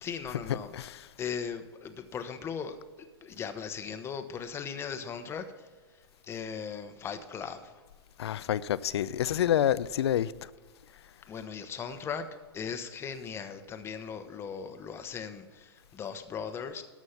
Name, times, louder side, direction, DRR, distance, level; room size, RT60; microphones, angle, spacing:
voice 1, 0.0-2.8 3.2-5.7 5.9-7.8 11.3-12.3 12.5-16.8, left 6 dB, 20° left, 0.9 m, -38 dB
voice 2, 0.7-1.1 8.2-10.3, left 11 dB, 80° left, 0.5 m, -28 dB
13.0 x 6.3 x 5.7 m
hypercardioid pair, 140°, 14 cm